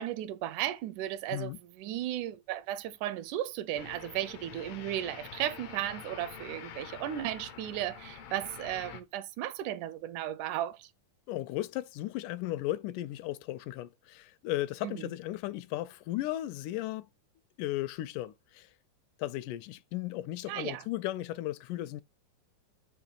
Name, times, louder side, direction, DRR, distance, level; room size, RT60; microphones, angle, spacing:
voice 1, 0.0-10.9 14.8-15.1 20.5-20.8, right 12 dB, 80° right, 1.9 m, -35 dB
sound 1, 3.7-9.0, left 8 dB, 65° left, 1.5 m, -46 dB
voice 2, 11.3-17.1 17.6-18.7 19.2-22.0, left 15 dB, 80° left, 2.1 m, -35 dB
7.1 x 3.1 x 5.5 m
omnidirectional pair, 3.7 m